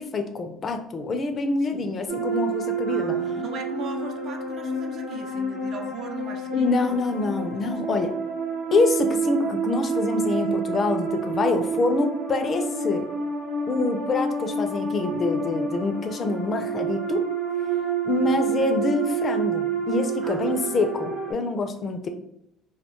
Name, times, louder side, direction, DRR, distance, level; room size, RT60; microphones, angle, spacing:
voice 1, 0.0-3.2 6.5-8.1 8.7-13.1 13.7-17.3 18.0-22.1, left 3 dB, 35° left, 6 dB, 0.4 m, -26 dB
sound 1, 2.1-21.3, right 4 dB, 85° right, 1.0 m, -28 dB
voice 2, 2.9-7.0 7.5-7.7 18.2-18.3 20.2-20.7, right 4 dB, 50° right, 4 dB, 0.5 m, -38 dB
2.3 x 2.2 x 2.8 m, 0.79 s
cardioid pair, 115°, 0 cm